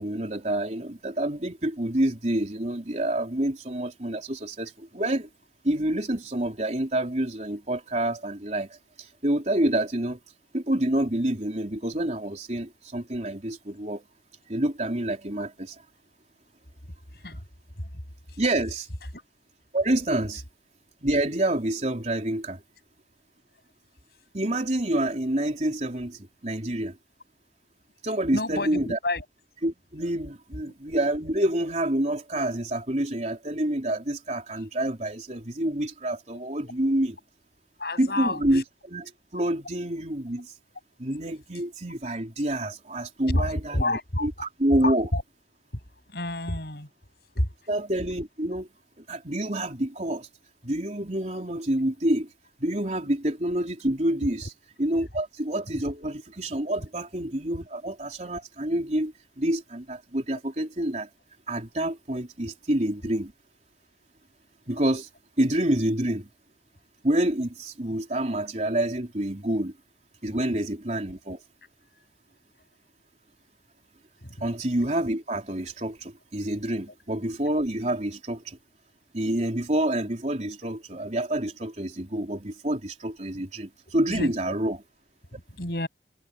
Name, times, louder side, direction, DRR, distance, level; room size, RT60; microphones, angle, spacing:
voice 1, 0.0-5.3 5.6-10.2 10.5-14.0 14.5-15.8 18.4-18.9 19.7-20.4 21.0-22.6 24.3-27.0 28.0-29.0 29.6-37.2 38.0-40.5 41.0-45.1 47.7-48.7 49.1-50.3 50.6-52.3 52.6-54.5 54.8-61.1 61.5-63.3 64.7-65.1 65.4-66.3 67.0-69.7 70.2-71.4 74.4-78.6 79.1-84.8, right 1 dB, 40° right, 3.9 m, -28 dB
voice 2, 28.3-29.3 30.6-30.7 37.8-38.6 43.3-44.3 44.8-45.2 46.1-46.9 47.3-47.5 54.2-54.5 63.0-63.1 74.2-74.4 84.1-84.6 85.3-85.9, left 1 dB, 65° left, 7.5 m, -30 dB
head